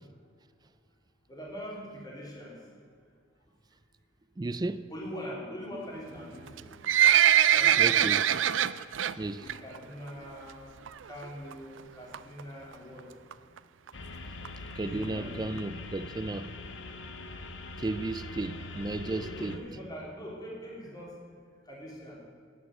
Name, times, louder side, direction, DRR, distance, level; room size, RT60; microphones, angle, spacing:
voice 1, 1.3-2.6 4.9-6.7 7.5-8.1 9.4-10.6 11.0-13.1 14.8-15.5 18.7-21.1 21.7-22.1, equal, 20° left, 3.4 m, -42 dB
voice 2, 4.4-4.9 7.8-8.3 9.2-9.5 14.8-16.6 17.8-19.6, right 2 dB, 20° right, 0.4 m, -34 dB
Livestock farm animals working animals, 6.5-9.1 9.5-9.8 10.1-10.2 10.9-11.0 11.2-11.3 11.5-11.6 12.1-12.4 13.0-13.1 13.3-13.4 13.6-13.7 13.9-14.0 14.4-14.5 15.0-15.1 15.6-15.7, right 10 dB, 85° right, 0.4 m, -22 dB
sound 1, 13.9-19.6, left 2 dB, 70° left, 1.1 m, -42 dB
11.0 x 9.5 x 8.0 m
head